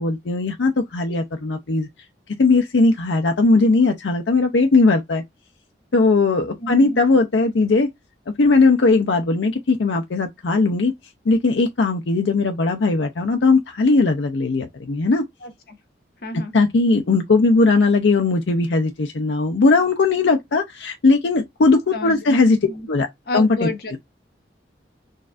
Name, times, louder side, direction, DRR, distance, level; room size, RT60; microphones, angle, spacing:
voice 1, 0.0-1.9 2.4-5.2 5.9-7.9 8.4-10.9 11.3-15.2 16.5-22.6 22.9-23.1 23.3-23.7, left 3 dB, 85° left, 0.6 m, -18 dB
voice 2, 6.6-7.0 15.4-15.8 16.2-16.5 21.9-22.4 22.7-22.9 23.3-24.0, left 2 dB, 55° left, 1.0 m, -29 dB
6.3 x 2.5 x 2.4 m
head